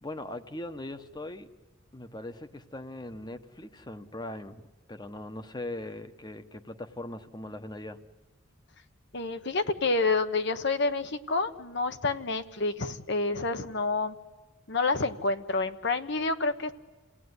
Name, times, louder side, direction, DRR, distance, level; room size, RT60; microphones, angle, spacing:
voice 1, 0.0-1.5 1.9-8.0, left 1 dB, 20° left, 1.1 m, -40 dB
voice 2, 9.1-14.1 14.7-16.7, left 3 dB, 60° left, 1.1 m, -28 dB
28.5 x 17.5 x 9.7 m
head